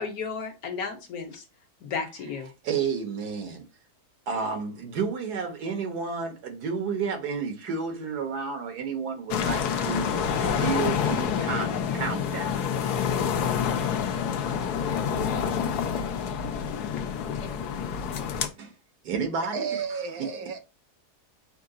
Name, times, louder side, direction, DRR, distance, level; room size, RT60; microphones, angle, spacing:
voice 1, 0.0-1.4 1.8-2.5, left 5 dB, 70° left, 1.4 m, -33 dB
voice 2, 2.6-3.6 4.3-10.1 10.4-12.6 18.6-18.7 19.0-19.6 20.2-20.3, right 5 dB, 85° right, 1.7 m, -31 dB
sound 1, 9.3-18.5, left 7 dB, 85° left, 1.2 m, -27 dB
voice 3, 19.5-20.6, right 6 dB, 70° right, 1.3 m, -32 dB
5.8 x 2.4 x 3.8 m
omnidirectional pair, 1.7 m